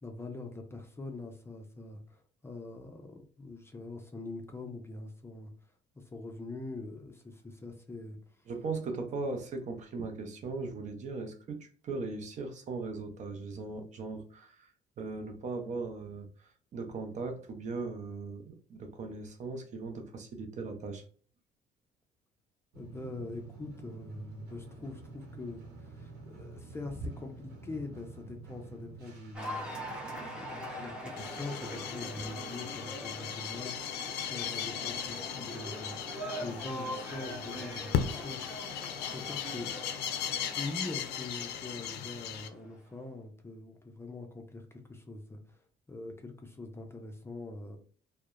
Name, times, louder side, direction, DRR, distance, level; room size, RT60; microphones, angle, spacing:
voice 1, 0.0-5.5 6.0-8.5 22.7-38.7 39.1-39.7 40.6-47.8, left 2 dB, 15° left, 0.5 m, -43 dB
voice 2, 8.5-14.7 15.0-21.0, right 3 dB, 45° right, 0.6 m, -38 dB
sound 1, 22.7-36.8, right 4 dB, 70° right, 0.9 m, -51 dB
Cheering / Applause, 29.3-42.7, equal, 5° right, 0.9 m, -43 dB
sound 2, 31.2-42.5, left 9 dB, 80° left, 0.4 m, -37 dB
2.7 x 2.0 x 2.4 m
cardioid pair, 110°, 17 cm